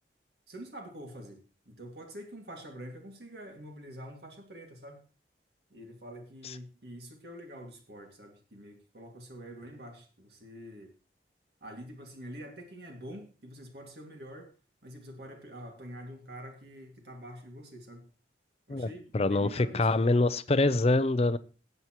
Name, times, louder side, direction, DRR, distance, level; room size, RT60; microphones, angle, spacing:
voice 1, 0.5-5.0 5.7-10.9 11.6-14.5 14.8-18.1 18.7-20.1, equal, 60° right, 3 dB, 2.2 m, -46 dB
voice 2, 19.1-21.4, left 2 dB, 35° left, 15 dB, 0.5 m, -25 dB
18.5 x 8.2 x 3.0 m, 0.35 s
head